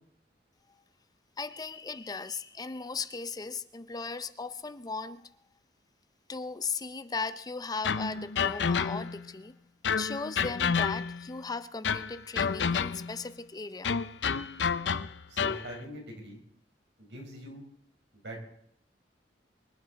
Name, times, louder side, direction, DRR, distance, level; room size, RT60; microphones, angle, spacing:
voice 1, 1.4-5.3 6.3-9.6 10.0-13.9, left 4 dB, 20° left, 0.5 m, -37 dB
sound 1, 7.8-9.3 9.8-11.3 11.8-13.2 13.8-15.7, left 6 dB, 75° left, 0.6 m, -30 dB
voice 2, 15.3-16.4 17.0-17.6 18.2-18.4, equal, 75° right, 4.8 m, -43 dB
24.0 x 11.0 x 4.0 m
head